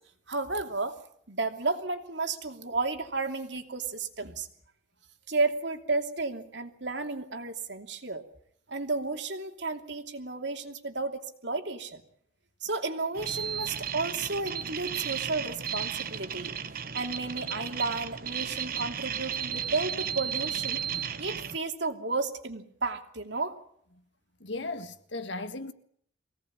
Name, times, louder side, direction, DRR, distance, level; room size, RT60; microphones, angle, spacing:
voice 1, 0.3-1.0 1.3-4.5 5.3-8.2 8.7-12.0 12.6-16.5 16.9-20.8 21.2-23.6, right 3 dB, 65° right, 2.9 m, -32 dB
sound 1, 13.1-21.6, right 8 dB, 50° right, 1.2 m, -34 dB
voice 2, 24.4-25.7, left 2 dB, 70° left, 1.7 m, -36 dB
24.0 x 18.0 x 8.8 m
head